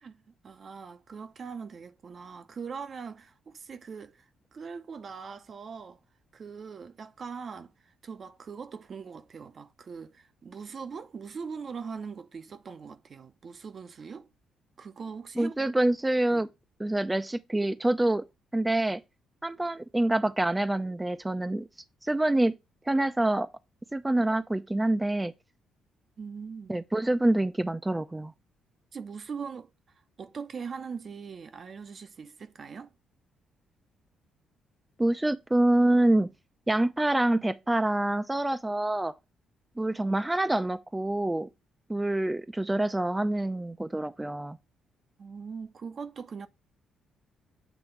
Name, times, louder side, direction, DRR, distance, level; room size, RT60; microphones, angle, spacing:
voice 1, 0.0-6.0 6.3-14.3 14.8-15.5 16.3-16.4 26.2-26.7 28.9-29.7 30.2-32.9 45.2-46.5, right 5 dB, 50° right, 0.7 m, -41 dB
voice 2, 15.4-16.5 16.8-18.2 18.5-19.0 19.4-21.7 22.0-22.5 22.9-23.5 23.9-25.3 26.7-28.3 35.0-36.3 36.7-39.1 39.8-41.5 41.9-44.6, right 1 dB, 15° right, 0.5 m, -26 dB
8.0 x 3.0 x 5.7 m
supercardioid pair, 60°, 0 cm